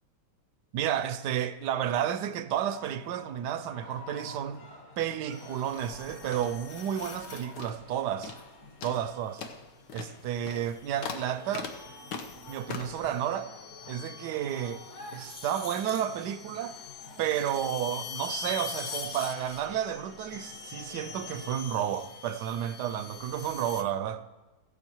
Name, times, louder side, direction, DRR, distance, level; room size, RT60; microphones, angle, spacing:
voice 1, 0.7-4.6 5.0-8.3 8.8-9.4 9.9-11.7 12.5-13.5 13.9-14.8 15.1-16.8 17.2-24.2, right 10 dB, 80° right, 1.2 m, -31 dB
sound 1, 2.6-21.5, left 2 dB, 45° left, 1.7 m, -50 dB
sound 2, 5.3-7.7 9.1-9.5 10.3-23.8, left 6 dB, 60° left, 1.3 m, -44 dB
sound 3, 5.7-7.3 7.6-7.9 8.2-8.5 8.8-13.1, left 5 dB, 75° left, 1.6 m, -41 dB
16.0 x 7.2 x 4.5 m
omnidirectional pair, 1.9 m